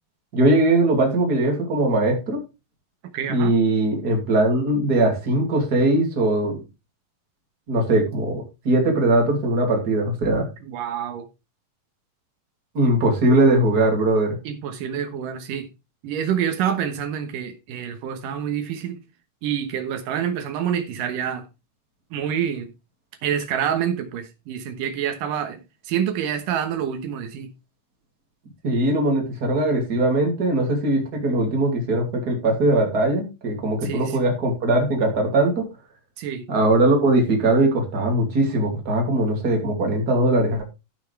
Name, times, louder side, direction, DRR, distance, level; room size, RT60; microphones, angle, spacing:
voice 1, 0.3-2.4 3.3-6.6 7.7-10.5 12.7-14.4 28.6-35.7 36.5-40.6, right 2 dB, 30° right, 2.8 m, -20 dB
voice 2, 3.1-3.5 10.6-11.2 14.4-15.7 16.0-19.0 19.4-21.5 22.1-22.7 23.2-25.6 25.8-27.5 33.8-34.2 36.2-36.5, right 9 dB, 85° right, 2.9 m, -27 dB
15.0 x 6.0 x 3.3 m
omnidirectional pair, 3.8 m